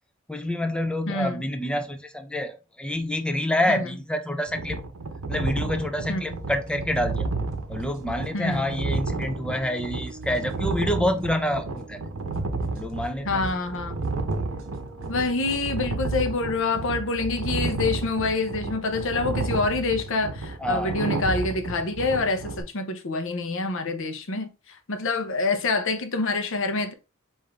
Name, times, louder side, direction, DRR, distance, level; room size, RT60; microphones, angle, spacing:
voice 1, 0.3-4.8 5.3-7.3 7.7-12.0 12.7-13.5 20.6-21.0, left 1 dB, 5° left, 0.4 m, -27 dB
voice 2, 1.1-1.4 3.7-3.8 6.1-6.4 8.3-8.7 13.2-14.0 15.1-26.9, left 3 dB, 65° left, 0.7 m, -27 dB
sound 1, 4.5-22.6, right 3 dB, 85° right, 0.8 m, -31 dB
sound 2, 6.1-15.2, right 2 dB, 65° right, 1.6 m, -48 dB
5.0 x 2.6 x 3.4 m
head